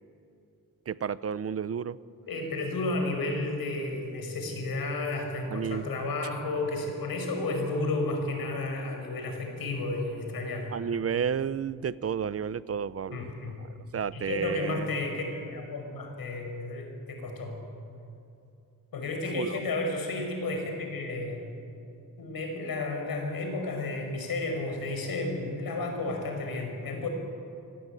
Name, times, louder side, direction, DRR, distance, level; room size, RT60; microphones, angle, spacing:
voice 1, 0.9-2.0 5.5-5.8 10.7-13.3 13.9-14.9 19.3-19.6, right 7 dB, 45° right, 17 dB, 0.6 m, -31 dB
voice 2, 2.3-10.7 13.1-13.6 14.1-17.6 18.9-21.5 22.2-27.1, left 2 dB, 80° left, 4 dB, 5.5 m, -32 dB
25.5 x 20.0 x 9.2 m, 2.6 s
wide cardioid pair, 155°, 35 cm